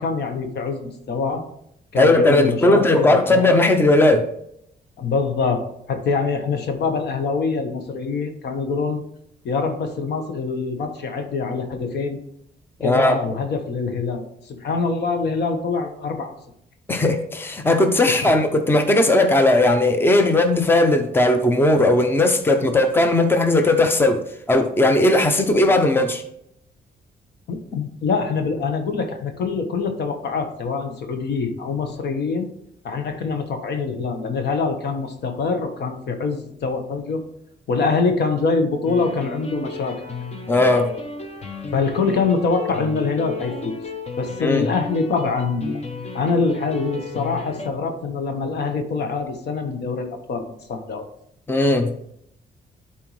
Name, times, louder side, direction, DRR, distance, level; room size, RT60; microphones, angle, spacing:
voice 1, 0.0-1.5 1.9-3.4 5.0-9.0 9.4-12.2 12.8-16.3 18.0-18.3 27.5-32.5 32.8-37.2 37.7-40.0 41.7-43.7 44.2-45.8 46.1-51.0, left 4 dB, 70° left, 6 dB, 1.2 m, -24 dB
voice 2, 1.9-4.3 12.8-13.2 16.9-24.2 24.5-26.2 40.5-40.9 44.4-44.7 51.5-51.9, left 2 dB, 10° left, 6 dB, 0.8 m, -17 dB
sound 1, 38.9-47.7, left 3 dB, 35° left, 1.1 m, -33 dB
11.5 x 4.4 x 3.2 m, 0.74 s
cardioid pair, 120°, 18 cm